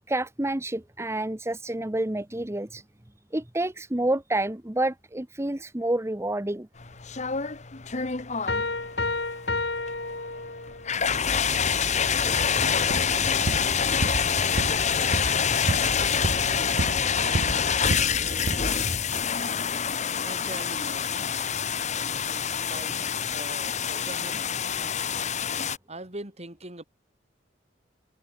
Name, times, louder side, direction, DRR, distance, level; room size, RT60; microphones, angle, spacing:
voice 1, 0.1-2.8 3.3-6.7, right 1 dB, 15° right, 0.9 m, -28 dB
sound 1, 6.8-25.8, left 6 dB, 40° left, 1.3 m, -26 dB
sound 2, 8.5-11.0, left 3 dB, 70° left, 3.4 m, -30 dB
sound 3, 12.8-13.1 13.5-13.7 14.0-14.3 14.6-14.8 15.1-15.4 15.7-15.9 16.2-17.1 17.3-17.6 17.9-18.2 18.5-18.6, right 2 dB, 55° right, 0.8 m, -29 dB
voice 2, 20.2-21.3 22.3-23.0 23.3-24.5 25.9-26.8, right 2 dB, 35° right, 4.3 m, -41 dB
head